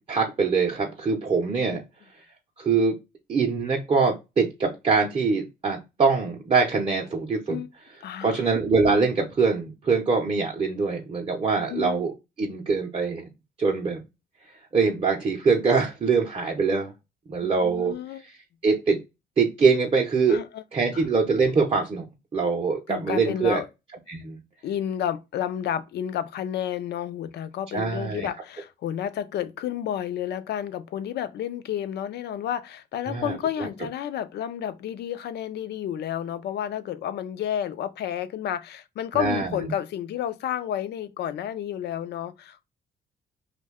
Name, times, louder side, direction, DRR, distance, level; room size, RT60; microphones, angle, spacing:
voice 1, 0.1-1.8 2.6-3.0 3.3-7.6 8.2-13.3 13.6-14.0 14.7-16.9 17.3-17.9 18.6-19.0 19.4-20.4 20.7-22.0 22.3-23.6 24.1-24.4 27.7-28.3 33.1-33.7 39.1-39.7, right 4 dB, 30° right, 0.5 m, -23 dB
voice 2, 8.0-8.5 11.7-12.0 17.4-18.2 20.3-20.6 20.9-21.0 22.9-23.7 24.6-42.7, left 10 dB, 65° left, 0.4 m, -31 dB
2.7 x 2.2 x 3.5 m
cardioid pair, 105°, 18 cm